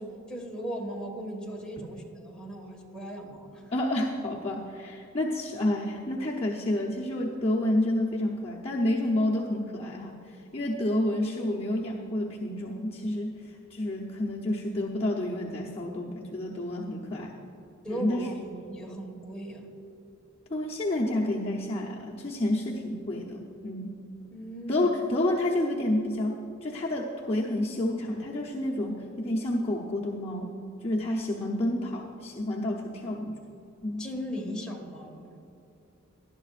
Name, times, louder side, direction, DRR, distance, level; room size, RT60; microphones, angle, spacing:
voice 1, 0.0-3.6 17.8-19.7 24.3-24.9 34.0-35.3, equal, 5° left, -2 dB, 1.7 m, -38 dB
voice 2, 3.7-13.3 13.7-17.3 17.9-18.3 20.5-24.0 24.7-30.5 30.8-33.4 33.8-34.1, left 1 dB, 30° left, -4 dB, 0.8 m, -29 dB
19.0 x 11.5 x 2.5 m, 2.9 s
head